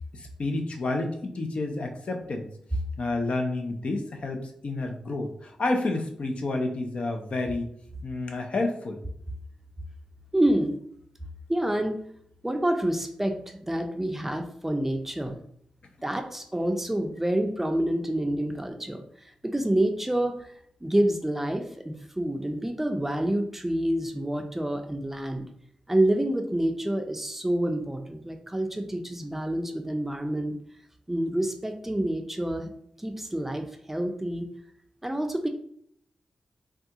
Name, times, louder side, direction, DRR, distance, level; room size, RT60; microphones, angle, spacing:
voice 1, 0.1-2.5 3.0-7.7 8.0-9.0, left 2 dB, 60° left, 3 dB, 0.5 m, -30 dB
voice 2, 10.3-10.8 11.5-12.0 12.4-15.4 16.0-19.0 19.4-20.5 20.8-25.5 25.9-30.5 31.1-32.7 33.0-34.4 35.0-35.5, right 1 dB, 10° right, 5 dB, 0.4 m, -27 dB
3.4 x 2.3 x 2.8 m, 0.66 s
cardioid pair, 60°, 2 cm